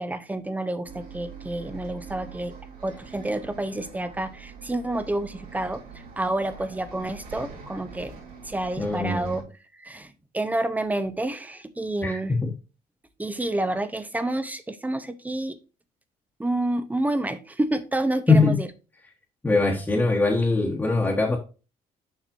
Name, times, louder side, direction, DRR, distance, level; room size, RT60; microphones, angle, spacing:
voice 1, 0.0-2.5 2.8-8.1 8.4-9.5 9.8-12.4 13.2-15.6 16.4-18.7, right 1 dB, 10° right, 0.7 m, -29 dB
Bus, 0.8-9.4, right 6 dB, 70° right, 3.4 m, -44 dB
voice 2, 8.8-9.4 12.0-12.5 18.3-18.6 19.4-21.4, left 3 dB, 10° left, 1.3 m, -22 dB
7.2 x 5.9 x 2.6 m
cardioid pair, 135°, 16 cm